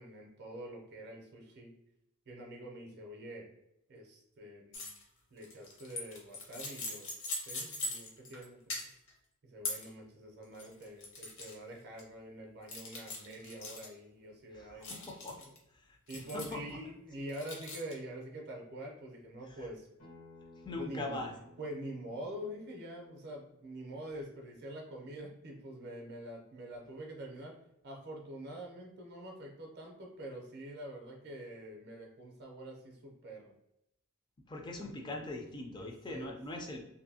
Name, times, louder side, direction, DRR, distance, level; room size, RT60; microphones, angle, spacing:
voice 1, 0.0-1.7 2.3-3.5 3.9-4.9 5.3-7.1 7.5-8.8 9.4-15.2 16.1-19.9 20.7-21.2 21.6-27.5 27.8-33.6 34.8-35.4 35.8-36.3, right 1 dB, 50° right, 1 dB, 0.5 m, -46 dB
sound 1, 4.7-5.0 5.4-8.4 8.7-9.1 9.6-9.9 10.4-11.5 12.0-12.1 12.7-13.9 14.8-15.6 16.1-16.7 17.3-17.9, left 2 dB, 55° left, 0.7 m, -41 dB
voice 2, 14.5-15.4 15.7-16.0 16.3-16.8 19.5-19.7 20.7-21.3 34.5-36.8, left 2 dB, 20° left, 2 dB, 0.3 m, -41 dB
Acoustic guitar, 20.0-25.2, left 1 dB, 90° left, 1.5 m, -59 dB
2.6 x 2.6 x 2.7 m, 0.85 s
head